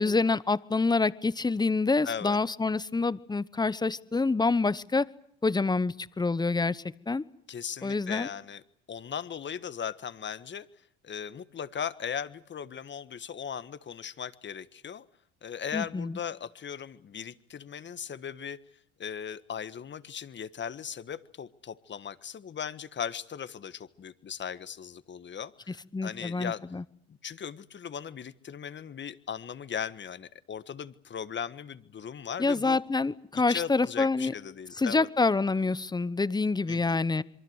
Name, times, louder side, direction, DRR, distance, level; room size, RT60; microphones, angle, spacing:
voice 1, 0.0-5.1 5.4-7.2 7.8-8.3 15.7-16.2 25.9-26.8 32.4-34.3 34.8-37.2, left 3 dB, 15° left, 17 dB, 1.0 m, -27 dB
voice 2, 2.0-2.4 7.5-8.6 8.9-10.7 11.0-15.0 15.4-18.6 19.0-26.6 27.1-32.8 33.5-35.1 36.7-37.0, left 8 dB, 35° left, 14 dB, 1.5 m, -38 dB
26.5 x 23.5 x 8.1 m, 0.68 s
supercardioid pair, 85°, 32 cm